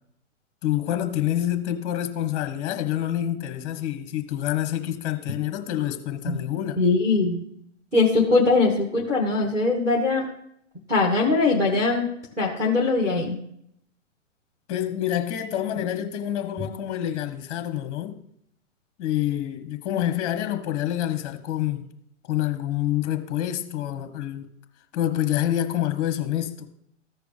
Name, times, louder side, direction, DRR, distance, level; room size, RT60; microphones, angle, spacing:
voice 1, 0.6-6.8 14.7-18.2 19.0-21.8 22.3-24.5 24.9-26.7, left 12 dB, 25° left, 1.1 m, -27 dB
voice 2, 6.8-7.4 7.9-10.2 10.9-12.1 12.4-13.4, left 3 dB, 10° right, 1.3 m, -21 dB
14.5 x 5.0 x 3.4 m
hypercardioid pair, 140°, 38 cm